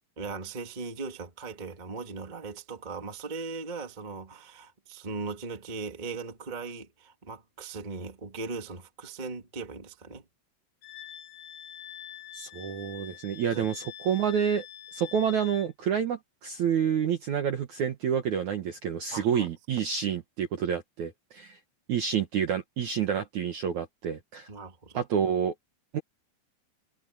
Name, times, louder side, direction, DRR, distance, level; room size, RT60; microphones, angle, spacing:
voice 1, 0.2-10.2 13.5-13.7 19.1-19.5 24.5-25.0, right 4 dB, 40° right, 0.6 m, -38 dB
Wind instrument woodwind instrument, 10.8-15.7, left 10 dB, 70° left, 2.1 m, -45 dB
voice 2, 12.3-14.6 14.9-21.6 21.9-24.5 24.9-25.5 25.9-26.0, right 8 dB, 70° right, 1.8 m, -28 dB
omnidirectional pair, 5.3 m